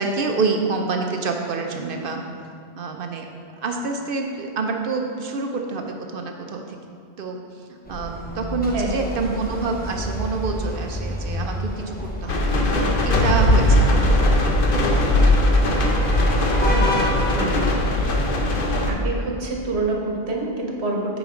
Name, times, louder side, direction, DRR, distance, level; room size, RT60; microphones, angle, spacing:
voice 1, 0.0-2.2 2.8-3.3 3.6-6.8 7.2-7.4 7.9-12.5 13.0-14.0 14.2-14.3, right 4 dB, 65° right, 3 dB, 0.8 m, -27 dB
sound 1, 7.9-18.7, equal, 10° left, 0.7 m, -31 dB
sound 2, 12.3-18.9, left 1 dB, 60° left, 1.0 m, -19 dB
voice 2, 16.7-17.0 17.3-18.1 18.9-21.2, right 2 dB, 80° right, 0 dB, 1.3 m, -27 dB
9.0 x 5.1 x 3.7 m, 2.4 s
omnidirectional pair, 1.1 m